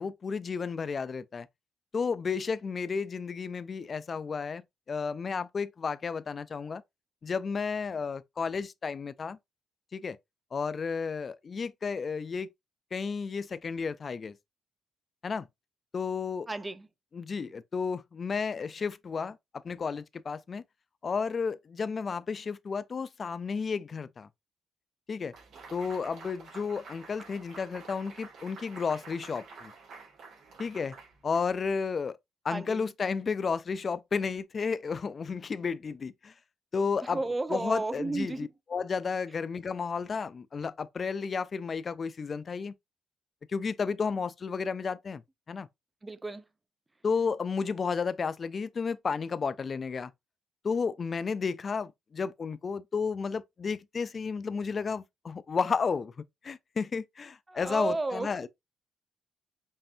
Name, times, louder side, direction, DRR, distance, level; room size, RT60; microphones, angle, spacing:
voice 1, 0.0-1.5 1.9-4.6 4.9-6.8 7.2-9.4 9.9-10.2 10.5-12.5 12.9-14.4 15.2-15.5 15.9-16.5 17.1-19.4 19.6-20.6 21.0-24.3 25.1-25.3 25.7-29.7 30.6-30.9 31.2-32.2 32.4-36.3 36.7-37.2 37.5-42.7 43.5-45.2 45.5-45.7 47.0-50.1 50.6-56.1 56.4-58.5, left 5 dB, 40° left, 0.4 m, -32 dB
voice 2, 16.5-16.9 32.5-32.8 37.0-38.5 46.0-46.4 57.5-58.4, right 2 dB, 20° right, 0.5 m, -33 dB
sound 1, 25.3-31.8, right 4 dB, 70° right, 2.2 m, -49 dB
5.4 x 2.6 x 2.5 m
cardioid pair, 90°, 0 cm